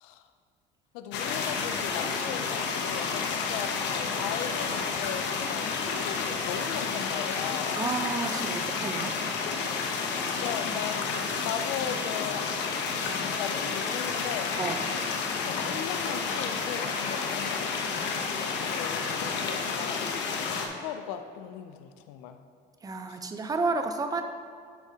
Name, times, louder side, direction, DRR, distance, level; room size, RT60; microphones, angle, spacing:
voice 1, 0.9-7.8 10.4-14.5 15.5-20.1 20.7-22.4 23.1-23.2, left 9 dB, 85° left, 9 dB, 0.5 m, -38 dB
sound 1, 1.1-20.7, left 5 dB, 65° left, 0.8 m, -30 dB
voice 2, 7.8-9.2 14.6-14.8 22.8-24.2, right 3 dB, 20° right, 7 dB, 0.6 m, -31 dB
10.5 x 4.8 x 2.8 m, 2.2 s
supercardioid pair, 95°, 20 cm